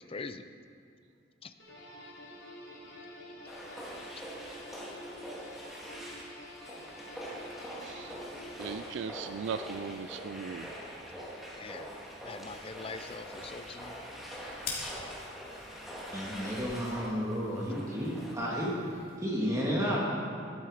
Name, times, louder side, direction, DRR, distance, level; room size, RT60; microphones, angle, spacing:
voice 1, 0.1-0.5 1.4-1.5 11.6-11.9 12.2-14.0, left 4 dB, 30° left, 9 dB, 0.5 m, -43 dB
sound 1, 1.6-9.9, left 1 dB, 85° left, 3.7 m, -48 dB
sound 2, 3.5-18.3, equal, ahead, 2.3 m, -44 dB
voice 2, 8.6-10.7, right 6 dB, 85° right, 10 dB, 0.4 m, -38 dB
sound 3, 12.4-19.2, left 4 dB, 55° left, 2.8 m, -48 dB
voice 3, 16.1-20.0, equal, 20° right, -5 dB, 2.0 m, -32 dB
12.5 x 12.5 x 4.9 m, 2.4 s
head